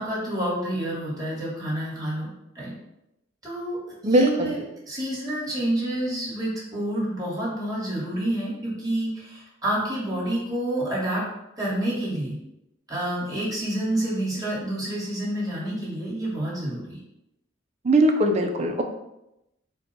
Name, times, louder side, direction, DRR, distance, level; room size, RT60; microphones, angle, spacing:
voice 1, 0.0-2.3 2.5-2.7 3.4-3.8 4.0-11.2 11.6-12.4 12.9-17.0, right 1 dB, 20° right, -7 dB, 1.4 m, -28 dB
voice 2, 4.0-4.5 17.8-18.8, right 1 dB, 35° right, 4 dB, 0.4 m, -20 dB
4.1 x 2.2 x 3.8 m, 0.87 s
head